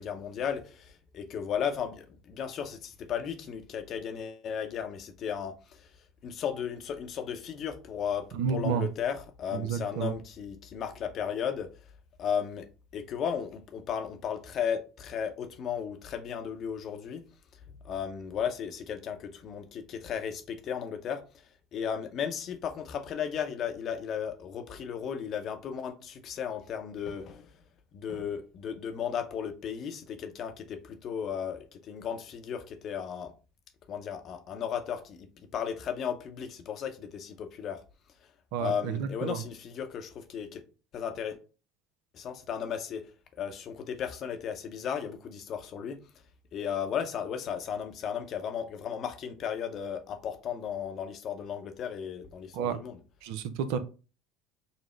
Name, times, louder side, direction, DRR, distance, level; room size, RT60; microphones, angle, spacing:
voice 1, 0.0-5.9 6.2-11.7 12.2-12.7 12.9-17.2 17.7-27.6 27.9-33.3 33.9-37.8 38.6-40.6 40.9-41.4 42.1-43.0 43.4-46.0 46.5-53.0, left 8 dB, 50° left, 0.7 m, -35 dB
voice 2, 8.3-8.9 9.5-10.2 38.5-39.4 52.5-52.8 53.2-53.8, right 7 dB, 70° right, 0.4 m, -31 dB
5.5 x 2.0 x 3.1 m
hypercardioid pair, 70°, 0 cm